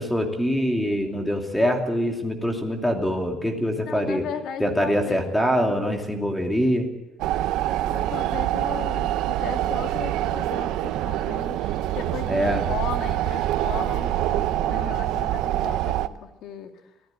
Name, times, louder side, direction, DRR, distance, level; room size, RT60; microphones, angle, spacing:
voice 1, 0.0-4.3 4.6-6.9 12.3-12.6, equal, 5° left, 3 dB, 2.7 m, -24 dB
voice 2, 3.8-5.3 7.8-16.7, left 8 dB, 65° left, 5 dB, 2.4 m, -36 dB
sound 1, 7.2-16.1, right 13 dB, 80° right, 0.9 m, -25 dB
25.0 x 16.0 x 7.6 m, 0.99 s
cardioid pair, 165°, 0 cm